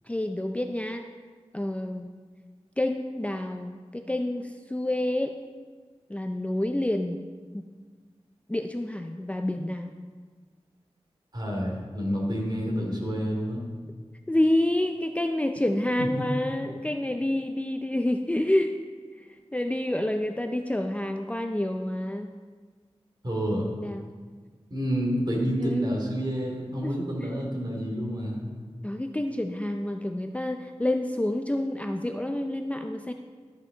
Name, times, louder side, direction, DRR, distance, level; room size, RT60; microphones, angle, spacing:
voice 1, 0.1-1.0 1.5-2.1 2.8-5.4 6.1-7.2 7.5-7.6 8.5-9.9 14.3-18.7 19.5-22.3 23.6-24.1 25.6-25.9 26.8-26.9 28.8-33.1, left 1 dB, 10° left, 5 dB, 0.5 m, -28 dB
voice 2, 11.3-13.6 16.0-16.2 23.2-23.6 24.7-28.4, equal, 40° right, -2 dB, 2.7 m, -29 dB
12.5 x 7.3 x 4.0 m, 1.6 s
wide cardioid pair, 50°, 11 cm